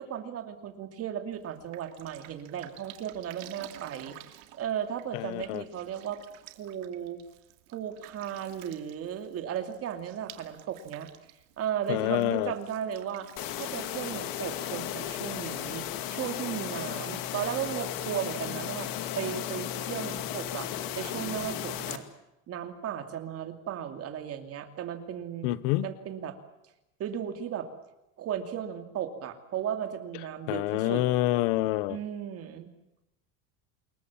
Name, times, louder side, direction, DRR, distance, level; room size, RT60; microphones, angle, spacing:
voice 1, 0.0-6.2 6.5-7.2 7.7-11.1 11.6-13.3 13.6-18.9 19.1-20.7 21.0-22.0 22.5-25.6 25.8-26.4 27.0-27.7 28.2-31.0 31.9-32.7, right 9 dB, 35° right, 7 dB, 2.7 m, -35 dB
Drip, 1.3-15.4, right 16 dB, 70° right, 2.8 m, -52 dB
voice 2, 5.1-5.6 11.9-12.5 25.4-25.9 30.5-32.0, left 17 dB, 70° left, 17 dB, 1.3 m, -27 dB
sound 1, 13.4-22.0, left 11 dB, 50° left, 2.4 m, -35 dB
27.5 x 22.5 x 7.4 m, 0.92 s
cardioid pair, 175°, 43 cm